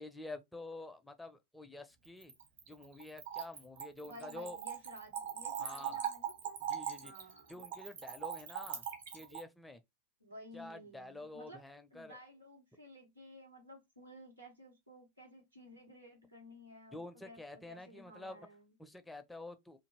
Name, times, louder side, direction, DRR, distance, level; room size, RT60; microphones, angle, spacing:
voice 1, 0.0-2.3 2.7-4.6 5.6-6.0 6.6-7.1 7.5-8.9 9.1-9.8 10.5-12.2 16.9-18.5 18.8-19.8, left 2 dB, 5° left, 0.4 m, -48 dB
Splash splatter / Trickle dribble, 2.0-9.4, right 9 dB, 60° right, 1.0 m, -41 dB
voice 2, 4.0-6.6 7.0-7.5 10.2-11.6 11.9-18.7, equal, 90° right, 1.3 m, -54 dB
2.6 x 2.5 x 2.9 m
figure-of-eight pair, 90°, 0 cm